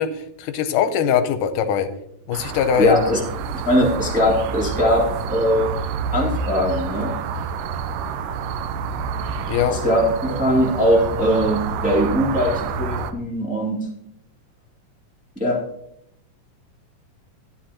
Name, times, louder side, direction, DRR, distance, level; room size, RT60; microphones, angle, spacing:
voice 1, 0.0-1.9 2.3-3.1 9.5-9.8, left 8 dB, 85° left, 10 dB, 2.2 m, -21 dB
sound 1, 2.3-13.1, right 5 dB, 80° right, 2.3 m, -28 dB
voice 2, 2.8-3.2 3.6-5.7 6.1-7.1 9.7-13.9 15.3-15.6, equal, 5° right, -3 dB, 1.3 m, -20 dB
13.0 x 9.9 x 2.9 m, 0.76 s
omnidirectional pair, 3.7 m